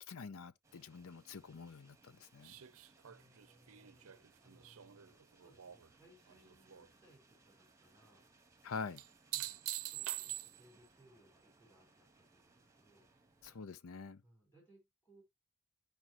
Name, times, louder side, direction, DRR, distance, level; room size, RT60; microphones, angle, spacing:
voice 1, 0.0-2.5 8.6-9.0 13.4-14.2, left 5 dB, 65° left, 0.6 m, -46 dB
sound 1, 0.6-13.6, right 3 dB, 15° right, 1.3 m, -68 dB
sound 2, 2.4-5.9 6.3-6.9 9.0-10.9 13.4-13.5, right 15 dB, 65° right, 0.6 m, -45 dB
voice 2, 3.0-8.3 9.3-13.1 14.2-15.2, right 1 dB, 10° left, 5.1 m, -67 dB
12.5 x 5.2 x 2.9 m
head